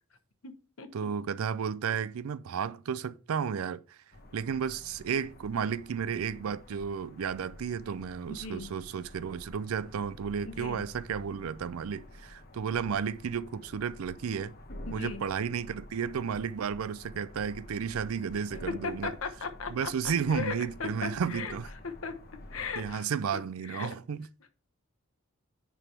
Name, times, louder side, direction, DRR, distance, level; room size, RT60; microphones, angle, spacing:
voice 1, 0.9-4.0 4.3-14.5 14.9-19.2 19.7-21.7 22.8-24.3, right 7 dB, 85° right, 0.4 m, -33 dB
sound 1, 4.1-22.9, left 1 dB, 45° left, 1.1 m, -49 dB
voice 2, 8.3-8.7 10.4-10.8 14.9-15.2 18.7-19.9 20.3-20.5 20.8-21.5 21.8-22.2 22.5-23.1 23.3-23.9, left 5 dB, 75° left, 1.0 m, -37 dB
9.8 x 3.5 x 4.5 m
head